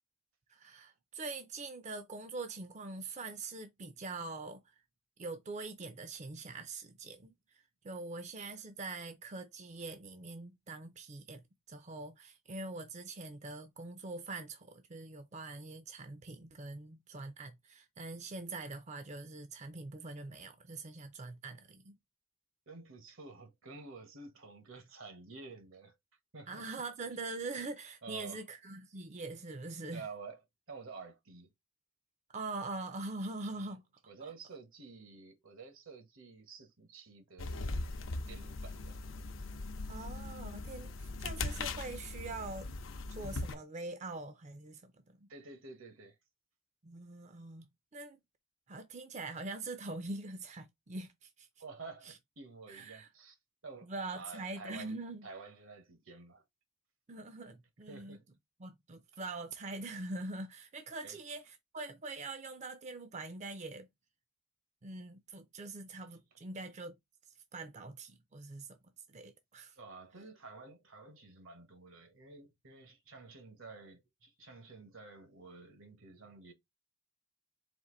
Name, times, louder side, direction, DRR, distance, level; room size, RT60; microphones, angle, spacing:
voice 1, 0.5-4.7 5.2-22.0 26.5-30.1 32.3-33.8 34.2-34.3 39.9-42.7 43.1-45.3 46.8-48.2 48.7-51.5 52.0-52.2 52.7-53.1 53.8-55.3 57.1-58.2 58.6-63.9 64.8-66.9 67.5-68.8 69.1-69.8, right 3 dB, 35° right, 0.5 m, -43 dB
voice 2, 22.7-25.9 26.3-26.7 28.0-28.4 29.9-30.4 30.7-31.5 33.6-33.7 34.1-37.8 38.3-39.3 45.3-46.1 51.6-53.4 53.6-56.4 57.9-58.3 61.0-61.2 69.8-76.5, right 4 dB, 80° right, 1.2 m, -50 dB
sound 1, 37.4-43.5, left 3 dB, 70° left, 0.6 m, -40 dB
4.3 x 2.5 x 3.8 m
head